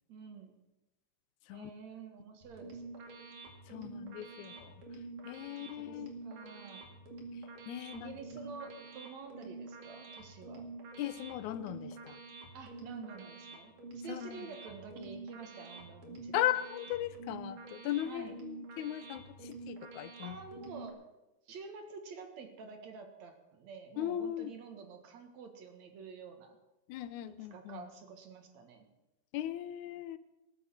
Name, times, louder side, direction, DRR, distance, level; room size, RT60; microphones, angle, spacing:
voice 1, 0.1-0.6 1.5-2.9 5.5-6.9 7.9-10.7 12.5-16.5 18.0-18.4 20.2-21.0 21.5-26.6 27.3-28.9, right 5 dB, 70° right, 5 dB, 2.9 m, -49 dB
sound 1, 2.4-20.9, right 3 dB, 90° right, 3.9 m, -48 dB
voice 2, 3.7-4.8 5.3-6.1 7.7-8.1 11.0-12.2 14.1-14.5 16.3-20.4 24.0-24.6 26.9-27.9 29.3-30.2, left 12 dB, 85° left, 14 dB, 2.1 m, -38 dB
18.5 x 8.2 x 7.4 m, 0.98 s
omnidirectional pair, 3.4 m